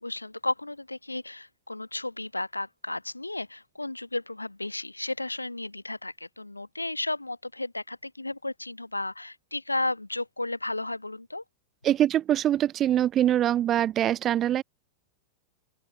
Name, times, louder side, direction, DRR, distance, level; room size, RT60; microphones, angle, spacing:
voice 1, 0.0-11.4, left 2 dB, 85° left, 2.1 m, -33 dB
voice 2, 11.8-14.6, right 11 dB, 30° right, 0.6 m, -23 dB
open air
figure-of-eight pair, 90°, 0 cm